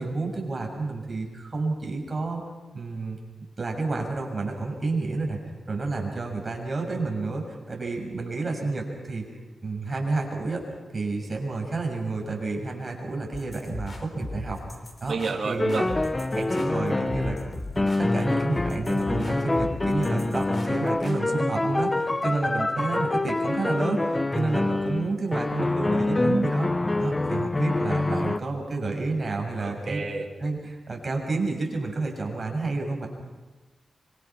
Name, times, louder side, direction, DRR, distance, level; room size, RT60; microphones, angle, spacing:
voice 1, 0.0-2.4 2.7-3.2 3.6-5.4 5.7-9.3 9.6-10.6 10.9-14.6 15.0-15.2 15.4-15.8 16.4-17.4 17.7-30.0 30.4-33.1, right 3 dB, 35° right, 1 dB, 6.7 m, -30 dB
sound 1, 13.3-21.2, left 2 dB, 40° left, 4.5 m, -38 dB
voice 2, 15.1-15.9 29.6-30.3, right 4 dB, 60° right, -1 dB, 3.0 m, -30 dB
sound 2, 15.6-28.4, left 2 dB, 20° left, 0.7 m, -26 dB
25.5 x 25.0 x 6.0 m, 1.2 s
wide cardioid pair, 100°, 0 cm